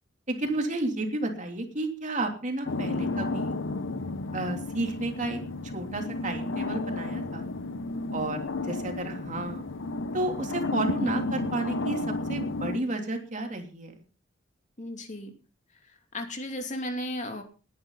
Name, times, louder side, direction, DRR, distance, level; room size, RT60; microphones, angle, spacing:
voice 1, 0.3-3.5 4.3-7.5 8.1-9.6 10.1-13.9, right 2 dB, 40° right, 4 dB, 3.1 m, -32 dB
sound 1, 2.7-12.8, left 3 dB, 80° left, 0.9 m, -32 dB
voice 2, 14.8-15.3 16.1-17.4, left 1 dB, 40° left, 5 dB, 2.8 m, -34 dB
20.0 x 10.5 x 4.1 m, 0.33 s
head